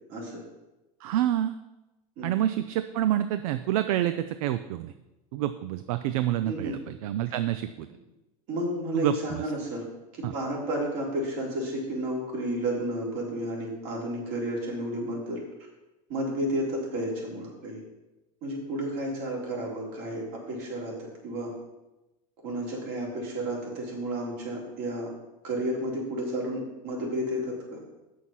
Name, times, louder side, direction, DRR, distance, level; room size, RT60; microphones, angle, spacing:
voice 1, 0.1-0.4 2.2-2.3 6.4-6.7 8.5-9.9 10.1-15.4 16.1-17.8 18.4-21.5 22.4-25.1 25.4-27.8, right 1 dB, 60° right, -2 dB, 3.5 m, -32 dB
voice 2, 1.0-1.6 2.2-4.9 5.3-7.9 8.9-9.4 10.2-10.3, right 12 dB, 80° right, 11 dB, 0.5 m, -28 dB
7.6 x 6.3 x 5.6 m, 1.0 s
supercardioid pair, 130°, 18 cm